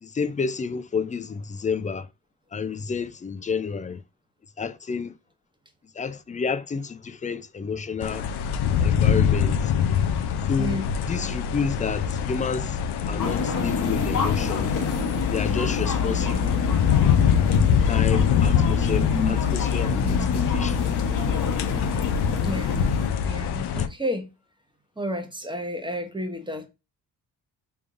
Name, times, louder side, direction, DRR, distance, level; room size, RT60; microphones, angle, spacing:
voice 1, 0.0-2.1 2.5-4.0 4.6-5.2 5.9-8.3 8.8-9.7 10.5-14.7 15.3-16.4 17.9-21.0, left 5 dB, 20° left, 0.4 m, -30 dB
sound 1, 8.0-23.9, left 7 dB, 90° left, 0.5 m, -25 dB
sound 2, 13.2-23.1, left 6 dB, 55° left, 1.0 m, -26 dB
voice 2, 22.4-22.9 23.2-24.3 25.0-26.7, equal, 10° right, 0.9 m, -31 dB
3.5 x 3.5 x 2.5 m
cardioid pair, 80°, 38 cm